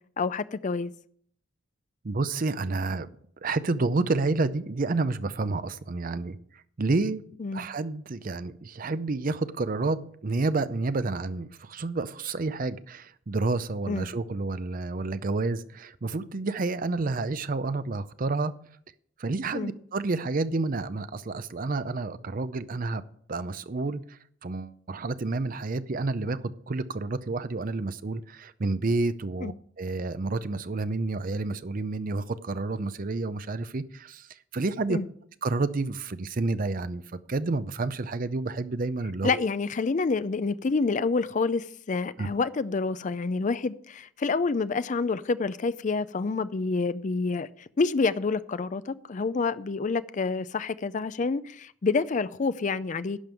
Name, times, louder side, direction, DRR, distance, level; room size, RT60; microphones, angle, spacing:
voice 1, 0.2-0.9 7.4-7.6 13.9-14.1 19.5-19.7 29.4-29.5 34.9-35.1 39.2-53.2, left 4 dB, 40° left, 0.4 m, -28 dB
voice 2, 2.0-3.1 3.4-6.4 6.8-7.2 7.5-18.6 19.2-23.0 23.3-34.3 34.5-35.0 35.4-39.4 42.2-42.3, right 3 dB, 45° right, 0.6 m, -29 dB
11.5 x 5.3 x 7.6 m
head